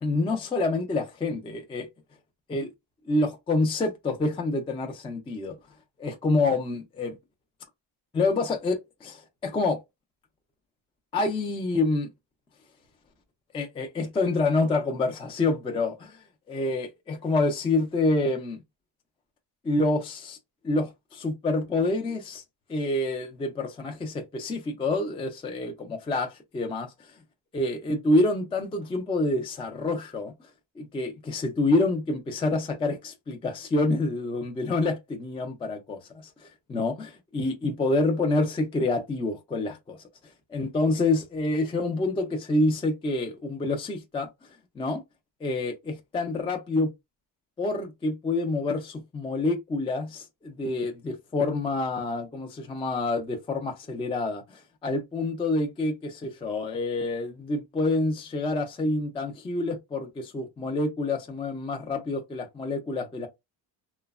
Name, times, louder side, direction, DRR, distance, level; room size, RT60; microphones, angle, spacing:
voice 1, 0.0-1.9 2.5-2.7 3.1-5.6 6.0-7.2 8.1-9.8 11.1-12.1 13.5-16.2 16.5-18.6 19.6-20.4 20.6-22.4 22.7-26.9 27.5-30.3 30.8-36.0 36.7-40.0 40.5-44.3 44.8-45.0 45.4-46.9 47.6-63.3, left 2 dB, 15° left, 0.3 m, -27 dB
3.0 x 2.0 x 2.3 m
cardioid pair, 145°, 43 cm